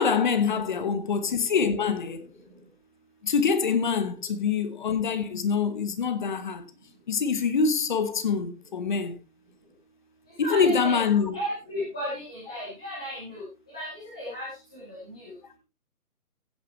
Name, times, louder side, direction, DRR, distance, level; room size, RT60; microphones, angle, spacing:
voice 1, 0.0-2.2 3.2-6.6 7.1-9.2 10.5-11.4, left 6 dB, 30° left, 1.2 m, -25 dB
voice 2, 10.4-13.4 13.7-15.3, equal, 5° left, 0.7 m, -35 dB
15.5 x 8.5 x 3.1 m
figure-of-eight pair, 155°, 46 cm